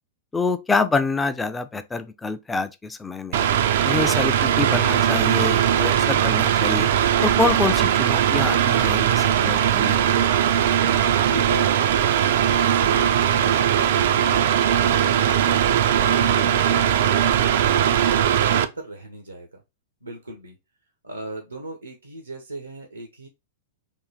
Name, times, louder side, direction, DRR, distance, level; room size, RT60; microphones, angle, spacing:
voice 1, 0.3-3.5 3.8-6.9 7.2-10.2, left 4 dB, 10° left, 0.5 m, -26 dB
Mechanical fan, 3.3-18.6, right 10 dB, 55° right, 0.4 m, -20 dB
voice 2, 10.8-19.6 20.0-20.6 21.0-23.3, right 2 dB, 85° right, 0.8 m, -36 dB
3.7 x 2.8 x 4.1 m
figure-of-eight pair, 100°, 0 cm